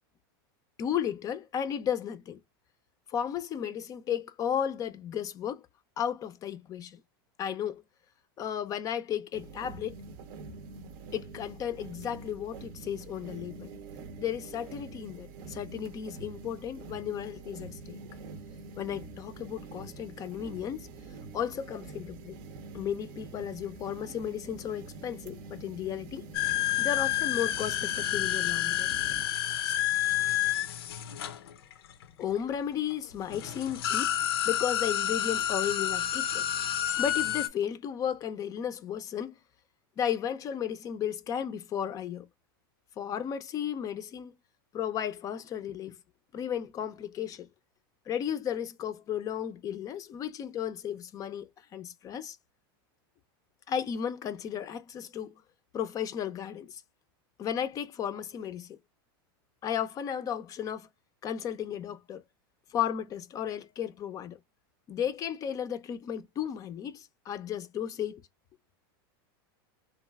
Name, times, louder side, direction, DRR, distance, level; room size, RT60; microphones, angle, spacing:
voice 1, 0.8-2.4 3.1-5.7 6.0-7.0 7.4-7.8 8.4-10.0 11.1-13.7 14.2-18.0 18.8-20.9 21.3-22.4 22.7-26.3 26.8-28.9 29.6-29.7 32.2-34.2 34.4-36.5 37.0-39.4 40.0-42.3 43.0-44.4 44.7-46.0 46.3-47.5 48.1-52.4 53.7-55.3 55.7-56.8 57.4-58.8 59.6-60.9 61.2-62.2 62.7-64.4 64.9-68.2, left 9 dB, 30° left, 0.4 m, -34 dB
sound 1, 9.3-29.3, right 3 dB, 60° right, 0.6 m, -46 dB
sound 2, 26.3-32.1 32.9-33.0 33.3-37.5, left 12 dB, 90° left, 0.5 m, -29 dB
3.0 x 2.4 x 2.3 m
supercardioid pair, 130°, 12 cm